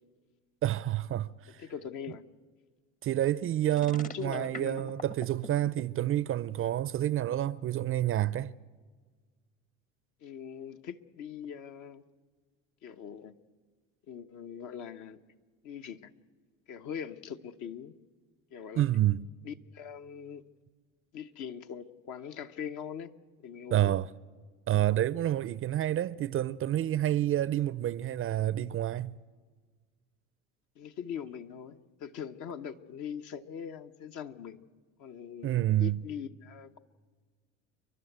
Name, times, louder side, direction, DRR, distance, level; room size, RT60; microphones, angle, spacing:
voice 1, 0.6-1.6 3.0-8.5 18.8-19.3 23.7-24.1 24.7-29.2 35.4-36.0, right 13 dB, 40° right, 0.5 m, -28 dB
voice 2, 1.5-2.2 4.0-4.9 10.2-12.0 12.8-13.3 14.1-15.2 15.6-16.1 16.7-17.9 18.5-18.8 19.4-20.5 21.1-23.1 23.4-23.9 30.8-34.6 35.0-36.8, left 8 dB, 60° left, 1.1 m, -41 dB
sound 1, 3.7-5.8, left 3 dB, 25° left, 0.9 m, -43 dB
30.0 x 11.5 x 8.1 m
supercardioid pair, 85°, 34 cm